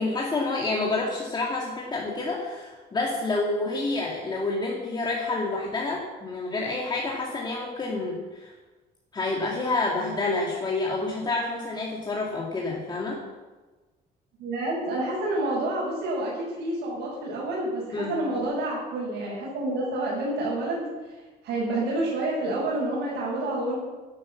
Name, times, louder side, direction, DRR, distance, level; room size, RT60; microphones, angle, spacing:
voice 1, 0.0-8.5 9.1-13.2 17.9-18.2, left 3 dB, 25° left, -3 dB, 2.4 m, -28 dB
voice 2, 14.4-20.9 21.4-23.8, right 1 dB, 85° right, -7 dB, 6.8 m, -28 dB
12.5 x 12.5 x 7.4 m, 1.2 s
cardioid pair, 165°, 17 cm